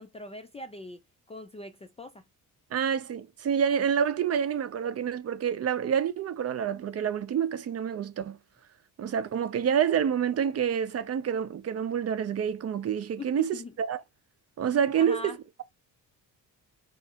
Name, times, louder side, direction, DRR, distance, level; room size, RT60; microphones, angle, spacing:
voice 1, 0.0-2.2 13.2-13.7 15.0-15.4, left 2 dB, 20° left, 0.3 m, -41 dB
voice 2, 2.7-8.4 9.0-14.0 14.6-15.6, right 8 dB, 40° right, 0.6 m, -28 dB
3.6 x 2.6 x 4.1 m
cardioid pair, 130°, 37 cm